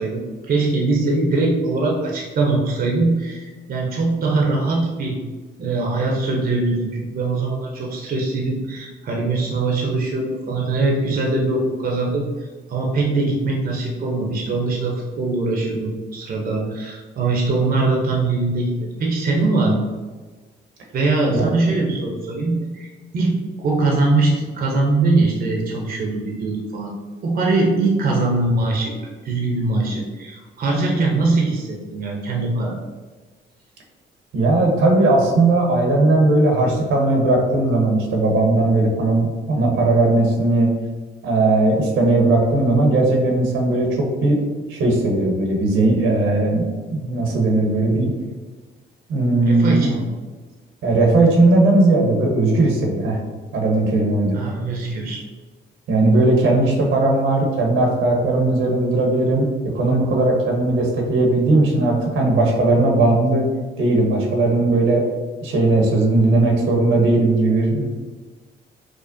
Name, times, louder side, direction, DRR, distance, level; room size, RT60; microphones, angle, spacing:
voice 1, 0.0-5.2 5.6-19.9 20.9-26.9 27.2-28.9 29.2-32.8 49.4-50.1 54.3-55.2, right 3 dB, 50° right, -1 dB, 0.6 m, -22 dB
voice 2, 34.3-40.7 41.2-44.4 44.7-46.6 46.9-48.1 49.1-49.9 50.8-53.2 53.5-54.4 55.9-59.5 59.7-63.5 63.8-65.0 65.4-67.8, right 2 dB, 80° right, 0 dB, 0.9 m, -18 dB
4.9 x 2.1 x 2.6 m, 1.3 s
cardioid pair, 90°, 20 cm